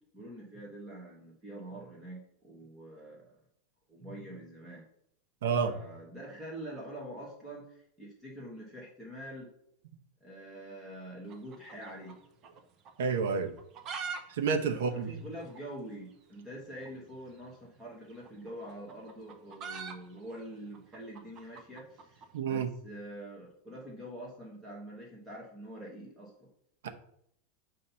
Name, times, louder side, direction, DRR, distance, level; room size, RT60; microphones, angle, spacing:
voice 1, 0.1-3.4 3.9-4.8 5.5-9.5 10.2-12.2 14.6-26.3, right 1 dB, 10° right, -4 dB, 1.0 m, -45 dB
voice 2, 5.4-5.7 13.0-13.5 14.3-15.2 22.3-22.7 26.8-26.9, right 5 dB, 80° right, 6 dB, 0.8 m, -29 dB
sound 1, 11.2-12.6 12.8-12.9 13.5-14.2 14.5-14.6 14.8-14.9 15.5-15.6 16.8-17.0 18.1-22.3, right 5 dB, 25° right, 0.6 m, -42 dB
7.4 x 2.7 x 5.5 m, 0.71 s
supercardioid pair, 170°, 0 cm